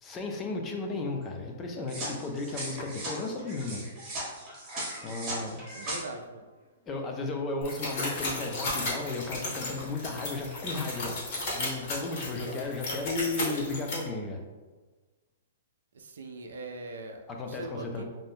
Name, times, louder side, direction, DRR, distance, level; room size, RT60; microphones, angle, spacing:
voice 1, 0.0-3.8 5.0-5.6 6.9-14.4 17.3-18.0, left 3 dB, 15° left, 2 dB, 0.3 m, -34 dB
sound 1, 1.9-6.0, right 1 dB, 20° right, 0.8 m, -38 dB
voice 2, 5.7-6.4 15.9-17.2 17.5-18.0, right 2 dB, 85° right, 5 dB, 0.4 m, -41 dB
sound 2, 7.6-13.9, left 2 dB, 40° left, 0.8 m, -34 dB
2.5 x 2.1 x 3.4 m, 1.3 s
hypercardioid pair, 170°, 0 cm